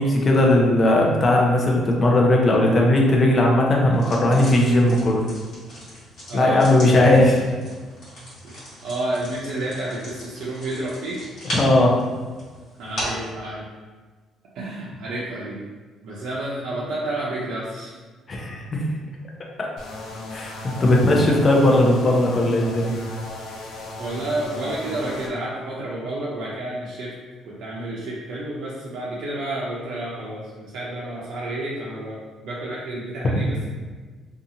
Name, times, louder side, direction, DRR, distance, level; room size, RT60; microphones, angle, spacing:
voice 1, 0.0-5.2 6.3-7.5 11.5-12.0 18.3-18.8 20.3-20.5 20.8-22.9, left 1 dB, 30° left, -1 dB, 0.5 m, -17 dB
sound 1, 3.9-13.3, equal, 60° left, 1.4 m, -37 dB
voice 2, 6.3-6.6 8.4-11.2 12.8-13.7 14.5-15.6 16.0-17.9 24.0-27.1 27.4-33.6, right 1 dB, 75° right, -7 dB, 0.5 m, -30 dB
sound 2, 19.8-25.3, left 2 dB, 80° left, 0.5 m, -36 dB
2.6 x 2.3 x 2.7 m, 1.4 s
cardioid pair, 130°, 0 cm